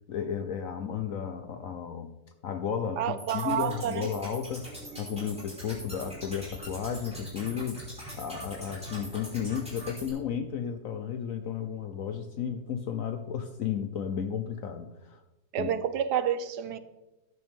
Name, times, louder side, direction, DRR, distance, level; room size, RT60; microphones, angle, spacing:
voice 1, 0.1-2.1 2.4-4.7 5.0-7.8 8.1-15.2 15.6-15.7, left 8 dB, 65° left, 0.9 m, -33 dB
voice 2, 3.0-4.1 15.5-16.8, right 9 dB, 70° right, 1.2 m, -29 dB
sound 1, 3.2-10.1, equal, 5° right, 4.5 m, -43 dB
12.5 x 10.5 x 3.6 m
omnidirectional pair, 2.0 m